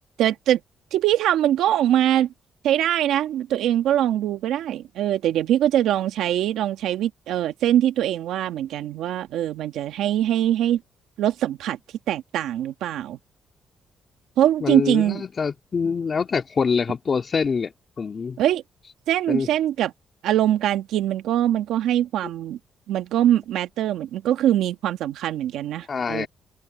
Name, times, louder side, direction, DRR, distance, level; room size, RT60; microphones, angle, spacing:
voice 1, 0.2-0.6 0.9-2.3 2.6-10.8 11.2-11.8 12.1-13.2 14.4-15.2 18.4-18.6 19.1-19.9 20.2-22.6 22.9-26.3, right 11 dB, 85° right, 1.6 m, -22 dB
voice 2, 14.6-18.4 19.3-19.5 25.9-26.3, left 5 dB, 40° left, 2.8 m, -25 dB
cardioid pair, 90°, 0 cm